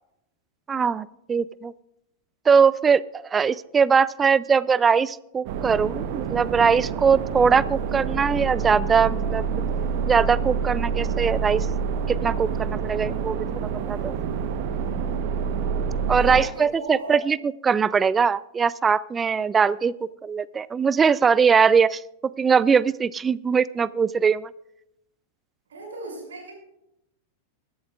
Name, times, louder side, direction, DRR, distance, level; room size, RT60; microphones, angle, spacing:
voice 1, 0.7-1.7 2.5-9.6 10.1-11.7 12.1-13.4 13.9-14.1 16.1-24.5, right 6 dB, 20° right, 20 dB, 0.3 m, -21 dB
sound 1, 5.5-16.4, right 6 dB, 45° right, 1.0 m, -27 dB
voice 2, 16.2-17.2 25.7-26.5, right 1 dB, 65° right, 0 dB, 5.9 m, -36 dB
22.5 x 11.0 x 2.4 m, 0.85 s
figure-of-eight pair, 90°, 0 cm